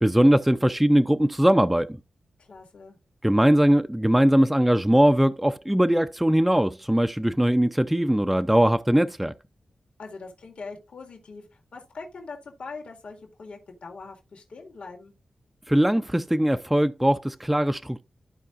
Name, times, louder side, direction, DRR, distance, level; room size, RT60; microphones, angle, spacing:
voice 1, 0.0-2.0 3.2-9.3 15.7-18.0, equal, 5° right, 0.4 m, -20 dB
voice 2, 2.4-3.0 10.0-15.1, left 4 dB, 65° left, 2.0 m, -42 dB
13.5 x 4.8 x 2.4 m
wide cardioid pair, 140°, 2 cm